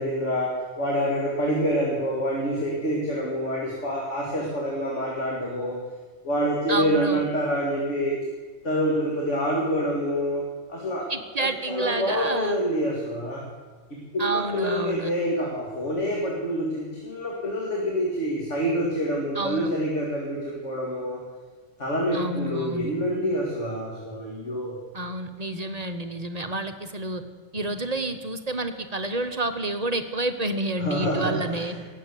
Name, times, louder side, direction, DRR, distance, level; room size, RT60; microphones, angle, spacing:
voice 1, 0.0-5.8 6.2-8.2 8.6-10.4 10.7-11.1 11.4-13.4 14.1-21.2 21.8-24.8 30.8-31.8, equal, 65° left, -2 dB, 2.7 m, -27 dB
voice 2, 6.7-7.2 11.1-12.6 14.2-15.1 19.3-19.7 22.1-22.9 24.9-27.2 27.5-31.8, right 2 dB, 35° right, 7 dB, 0.8 m, -29 dB
18.5 x 7.6 x 8.1 m, 1.4 s
omnidirectional pair, 1.4 m